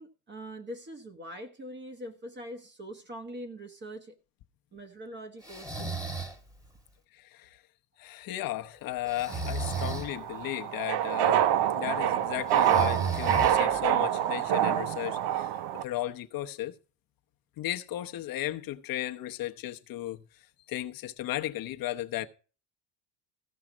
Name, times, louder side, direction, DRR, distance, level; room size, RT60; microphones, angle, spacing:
voice 1, 0.0-4.2 4.7-6.0, equal, 25° right, 1.1 m, -43 dB
Breathing, 5.4-6.4 9.1-10.1 12.5-13.9, right 4 dB, 10° right, 1.5 m, -34 dB
voice 2, 7.1-7.6 8.0-11.5 11.7-16.7 17.6-20.2 20.7-22.3, left 14 dB, 50° left, 0.9 m, -35 dB
sound 1, 9.3-15.8, right 10 dB, 65° right, 0.7 m, -27 dB
15.0 x 5.7 x 6.0 m
cardioid pair, 130°, 44 cm